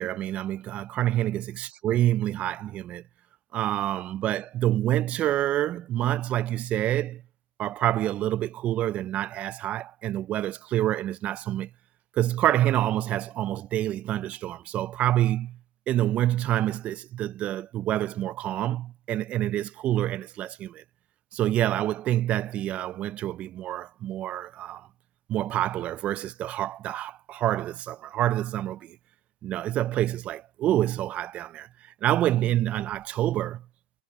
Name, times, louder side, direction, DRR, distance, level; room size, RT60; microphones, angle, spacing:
voice 1, 0.0-3.0 3.5-7.2 7.6-11.7 12.2-15.6 15.9-20.8 21.3-24.9 25.3-29.0 29.4-31.7 32.0-33.6, right 13 dB, 25° right, 0.4 m, -27 dB
hypercardioid pair, 125°, 5 cm